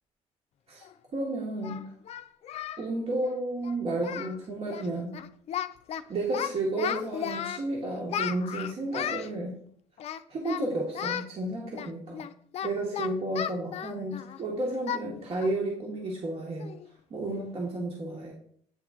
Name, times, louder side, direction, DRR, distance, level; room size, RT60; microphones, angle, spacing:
Singing, 0.8-0.9 1.6-2.8 3.1-3.3 3.6-3.7 4.0-4.4 4.6-4.9 5.1-6.0 6.3-7.6 8.1-9.3 10.0-10.6 10.9-11.3 11.7-14.4 14.9-15.1 15.4-15.6 16.0-16.1 16.6-16.9, left 9 dB, 55° left, 0.4 m, -34 dB
voice 1, 1.1-1.9 2.8-5.2 6.1-9.6 10.3-12.3 12.6-16.7 17.1-18.3, right 2 dB, 50° right, -1 dB, 1.4 m, -32 dB
8.9 x 3.0 x 3.6 m, 0.62 s
cardioid pair, 100°, 13 cm